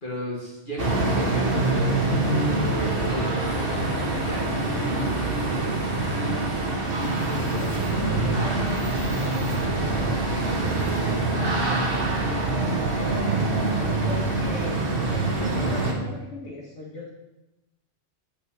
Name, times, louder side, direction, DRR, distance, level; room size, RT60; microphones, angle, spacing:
voice 1, 0.0-5.3 5.6-6.4 7.2-8.8, left 1 dB, 45° left, -5 dB, 2.1 m, -35 dB
sound 1, 0.8-15.9, right 2 dB, 50° right, 1.6 m, -25 dB
voice 2, 7.4-12.9 14.0-17.1, left 2 dB, 75° left, -5 dB, 1.9 m, -40 dB
9.1 x 8.2 x 3.7 m, 1.0 s
omnidirectional pair, 1.2 m